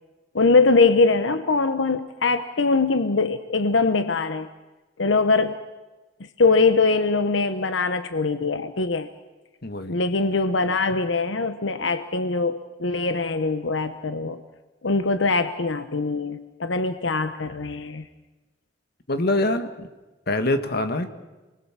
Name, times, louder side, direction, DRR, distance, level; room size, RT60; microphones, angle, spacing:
voice 1, 0.3-4.5 5.0-5.6 6.4-9.1 9.9-14.4 14.8-18.0, left 3 dB, 85° left, 10 dB, 1.0 m, -22 dB
voice 2, 9.6-10.0 19.1-19.9 20.3-21.1, left 2 dB, 55° left, 8 dB, 1.7 m, -24 dB
28.5 x 21.0 x 7.4 m, 1.2 s
head